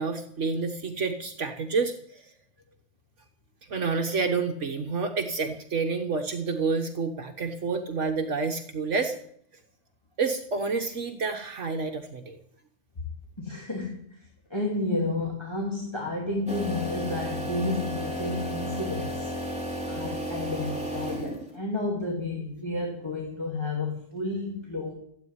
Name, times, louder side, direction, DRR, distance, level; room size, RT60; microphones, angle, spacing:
voice 1, 0.0-2.3 3.7-9.1 10.2-12.4, right 4 dB, 70° right, 4 dB, 1.5 m, -29 dB
voice 2, 13.4-14.2 14.5-19.3 19.9-24.9, left 2 dB, 20° left, -2 dB, 2.8 m, -31 dB
sound 1, 16.5-21.6, equal, 5° right, 3.6 m, -33 dB
16.0 x 8.8 x 9.6 m, 0.67 s
omnidirectional pair, 1.3 m